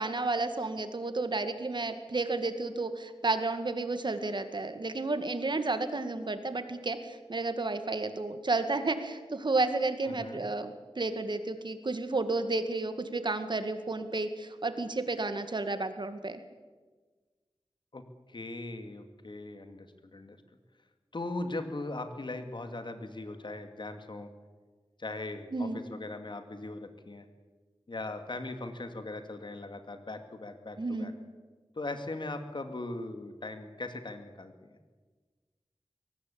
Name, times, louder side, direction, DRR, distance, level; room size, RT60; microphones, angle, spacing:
voice 1, 0.0-16.4 25.5-25.8 30.8-31.1, right 3 dB, 55° right, 9 dB, 2.0 m, -32 dB
voice 2, 10.0-10.4 17.9-18.0 18.3-19.9 20.1-20.4 21.1-24.3 25.0-27.3 27.9-31.1 31.8-34.7, left 2 dB, 55° left, 7 dB, 2.6 m, -39 dB
22.5 x 18.5 x 8.7 m, 1.4 s
wide cardioid pair, 60°, 9 cm